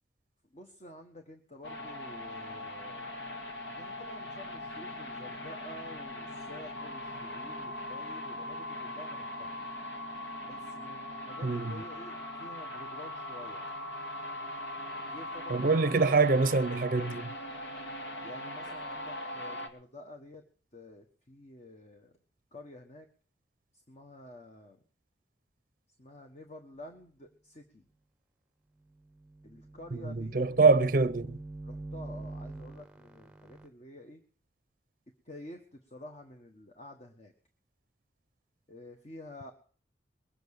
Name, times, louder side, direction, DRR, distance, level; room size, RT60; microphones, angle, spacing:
voice 1, 0.5-3.3 3.8-9.6 10.4-13.6 15.0-16.2 18.2-20.4 20.7-22.2 22.5-23.1 23.7-24.8 26.0-27.8 29.4-30.7 31.6-34.2 35.2-37.3 38.7-39.5, left 1 dB, 40° left, 1.4 m, -49 dB
sound 1, 1.6-19.7, left 1 dB, 80° left, 2.2 m, -40 dB
voice 2, 11.4-11.8 15.5-17.3 30.0-31.4, right 4 dB, 50° right, 0.6 m, -25 dB
sound 2, 28.9-33.7, right 2 dB, 5° right, 0.8 m, -45 dB
21.5 x 8.0 x 6.6 m
head